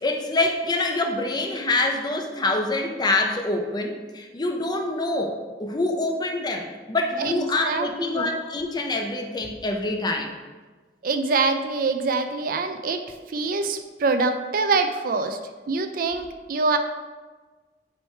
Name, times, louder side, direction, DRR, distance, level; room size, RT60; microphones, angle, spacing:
voice 1, 0.0-10.3, left 2 dB, 25° left, 3 dB, 0.6 m, -26 dB
voice 2, 7.2-8.3 11.0-13.0 13.3-15.4 15.7-16.8, right 4 dB, 50° right, 7 dB, 0.4 m, -25 dB
8.4 x 3.2 x 4.4 m, 1.3 s
head